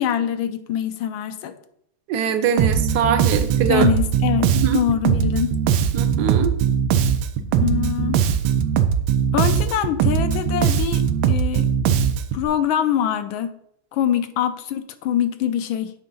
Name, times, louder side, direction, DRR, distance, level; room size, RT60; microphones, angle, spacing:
voice 1, 0.0-1.5 3.7-5.5 7.6-8.2 9.3-11.7 12.3-13.5 13.9-15.9, left 10 dB, 80° left, 9 dB, 1.4 m, -24 dB
voice 2, 2.1-3.9 4.6-4.8 5.9-6.5, right 7 dB, 65° right, 8 dB, 1.1 m, -22 dB
Bass guitar, 2.6-12.5, right 8 dB, 90° right, 1.5 m, -20 dB
8.2 x 3.7 x 5.5 m, 0.70 s
omnidirectional pair, 2.3 m